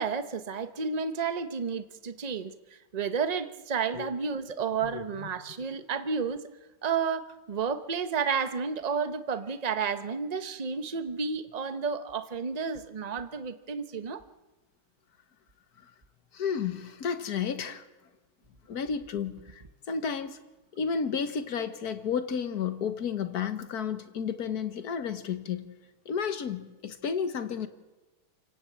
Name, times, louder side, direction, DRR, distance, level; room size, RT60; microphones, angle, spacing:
voice 1, 0.0-2.5 2.9-6.5 6.8-14.2, right 6 dB, 35° right, 0.7 m, -31 dB
voice 2, 4.8-5.3 15.8-15.9 16.3-17.8 18.7-20.4 20.7-25.7 26.1-27.7, left 6 dB, 50° left, 1.6 m, -32 dB
28.5 x 17.5 x 8.7 m
omnidirectional pair, 2.4 m